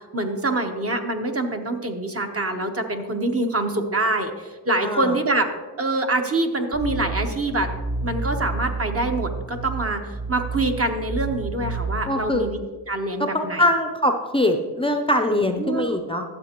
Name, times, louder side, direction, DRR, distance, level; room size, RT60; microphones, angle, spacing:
voice 1, 0.1-5.5 5.8-7.7 8.0-12.6 12.9-13.6 15.6-16.0, right 2 dB, 35° right, 4 dB, 1.1 m, -25 dB
voice 2, 4.8-5.1 12.1-12.4 13.3-16.2, left 1 dB, 15° left, 4 dB, 0.6 m, -22 dB
sound 1, 6.7-12.3, right 3 dB, 60° right, 2.6 m, -30 dB
12.5 x 7.5 x 3.0 m, 1.4 s
cardioid pair, 65°, 41 cm